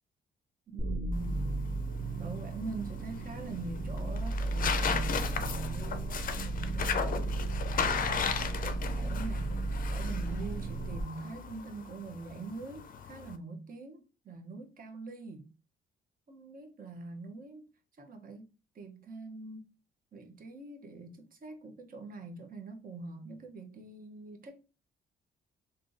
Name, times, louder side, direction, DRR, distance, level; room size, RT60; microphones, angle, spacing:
voice 1, 0.7-1.4 2.2-9.6 9.9-15.5 16.3-17.7 18.0-18.5 18.7-19.7 20.1-24.7, right 3 dB, 45° right, 0.9 m, -44 dB
sound 1, 0.8-11.0, right 2 dB, 30° right, 0.5 m, -34 dB
sound 2, 1.1-13.4, left 7 dB, 45° left, 0.4 m, -36 dB
3.5 x 2.6 x 2.6 m
cardioid pair, 90°, 20 cm